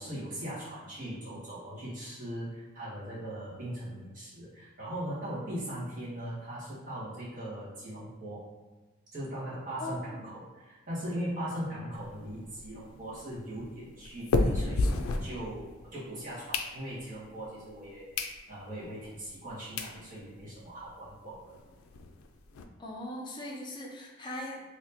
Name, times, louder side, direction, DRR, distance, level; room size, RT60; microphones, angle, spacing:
voice 1, 0.0-8.5 9.1-21.6, right 1 dB, 40° right, -9 dB, 1.2 m, -39 dB
voice 2, 9.8-10.3 22.8-24.6, left 1 dB, 20° left, -2 dB, 0.5 m, -40 dB
sound 1, 11.9-15.9 16.3-17.2 17.7-17.8 18.1-18.4 18.8-18.9 19.5-19.6 19.8-20.0 20.4-20.5 20.7-20.8 21.1-21.2 21.5-22.6, left 2 dB, 85° left, 0.4 m, -32 dB
3.4 x 2.7 x 2.8 m, 1.2 s
head